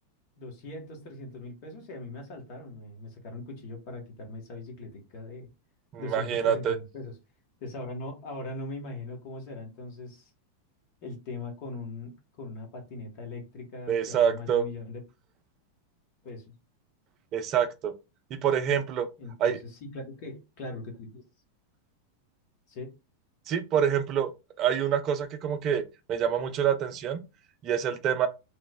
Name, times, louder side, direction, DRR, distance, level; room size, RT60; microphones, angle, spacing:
voice 1, 0.4-5.5 6.0-7.1 7.6-10.3 11.0-15.0 16.2-16.5 19.2-19.5 19.8-21.2 22.7-22.9, left 2 dB, 45° left, 1.0 m, -40 dB
voice 2, 5.9-6.8 13.9-14.6 17.3-17.9 18.4-19.1 19.4-19.6 23.5-24.3 24.6-25.8 26.1-27.2 27.6-28.3, right 8 dB, 35° right, 0.4 m, -26 dB
3.0 x 2.0 x 3.3 m
figure-of-eight pair, 90°, 0 cm